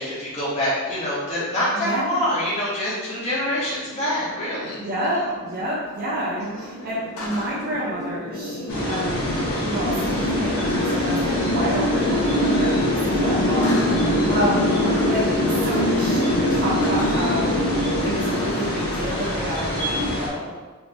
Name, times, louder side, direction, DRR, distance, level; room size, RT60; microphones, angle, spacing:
voice 1, 0.0-4.8 5.2-5.3 6.4-6.8 14.3-15.1, left 1 dB, 30° left, -9 dB, 1.2 m, -26 dB
voice 2, 1.7-2.2 4.8-14.7 15.0-17.7 18.0-20.6, right 1 dB, 45° right, -6 dB, 0.5 m, -29 dB
sound 1, 3.5-19.9, left 1 dB, 85° left, 0.6 m, -24 dB
sound 2, 8.7-20.3, left 1 dB, 65° left, 1.0 m, -28 dB
3.5 x 3.0 x 2.5 m, 1.3 s
head